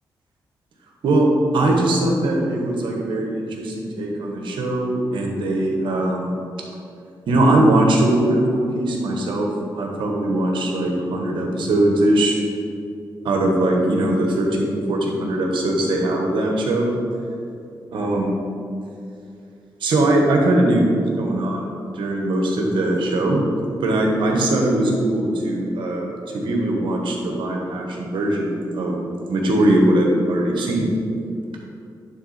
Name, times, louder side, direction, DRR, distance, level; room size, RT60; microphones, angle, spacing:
voice 1, 1.5-6.3 7.3-9.5 9.7-12.3 13.2-16.9 17.9-18.3 19.8-21.7 21.9-23.4 23.8-26.1 26.3-30.9, right 1 dB, 80° right, 0 dB, 1.3 m, -20 dB
10.5 x 3.6 x 4.2 m, 2.6 s
cardioid pair, 80°, 8 cm